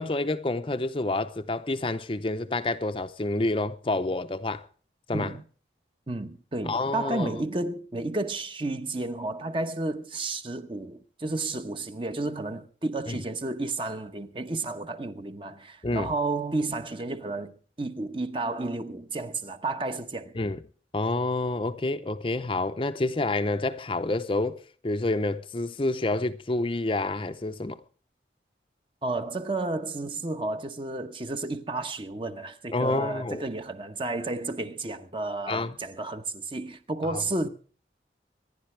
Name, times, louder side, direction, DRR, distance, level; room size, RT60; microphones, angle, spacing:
voice 1, 0.0-4.6 5.1-5.3 6.6-7.3 13.1-13.2 15.8-16.1 20.4-20.6 20.9-27.8 32.7-33.4 35.5-35.8 37.0-37.2, left 2 dB, 30° left, 0.6 m, -28 dB
voice 2, 5.1-5.4 6.1-20.3 29.0-37.5, right 2 dB, 30° right, 1.0 m, -32 dB
25.5 x 11.0 x 3.3 m
head